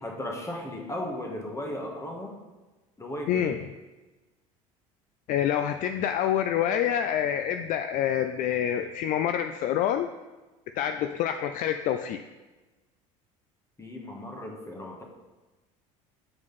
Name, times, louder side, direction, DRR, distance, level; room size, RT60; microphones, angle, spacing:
voice 1, 0.0-2.4 3.0-3.5 13.8-15.0, left 1 dB, 15° left, 1 dB, 1.6 m, -36 dB
voice 2, 3.3-3.6 5.3-10.1 10.8-12.2, left 10 dB, 50° left, 8 dB, 0.4 m, -27 dB
7.4 x 4.8 x 4.1 m, 1.2 s
hypercardioid pair, 80°, 17 cm